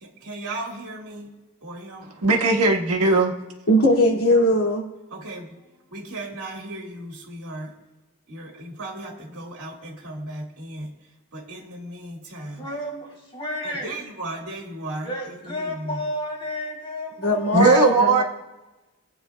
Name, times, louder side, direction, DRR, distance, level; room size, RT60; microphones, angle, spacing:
voice 1, 0.0-1.3 1.6-2.1 5.1-5.6 5.9-7.7 8.3-10.9 11.3-12.6 13.6-15.1 15.4-15.9, right 1 dB, 70° right, -1 dB, 2.1 m, -36 dB
voice 2, 2.2-3.3 17.5-18.2, right 3 dB, 85° right, 0 dB, 1.4 m, -18 dB
voice 3, 3.7-4.9 17.2-18.2, left 1 dB, 80° left, -1 dB, 2.4 m, -19 dB
voice 4, 12.5-14.0 15.0-18.0, left 1 dB, 25° left, -3 dB, 3.4 m, -32 dB
25.0 x 8.9 x 2.3 m, 1.1 s
head